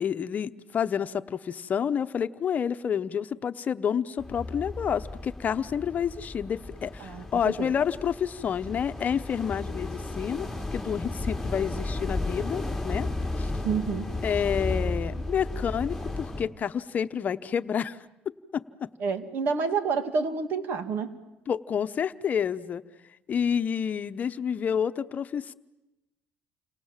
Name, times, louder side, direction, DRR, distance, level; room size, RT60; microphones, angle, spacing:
voice 1, 0.0-13.1 13.4-13.5 14.2-18.0 18.3-18.9 21.5-22.8 23.3-25.5, left 8 dB, 45° left, 11 dB, 0.9 m, -29 dB
sound 1, 4.2-16.4, left 2 dB, ahead, 3.0 m, -34 dB
voice 2, 7.0-7.7 13.6-14.1 19.0-21.1, right 5 dB, 65° right, 9 dB, 2.4 m, -29 dB
30.0 x 26.5 x 7.4 m, 0.98 s
cardioid pair, 95°, 4 cm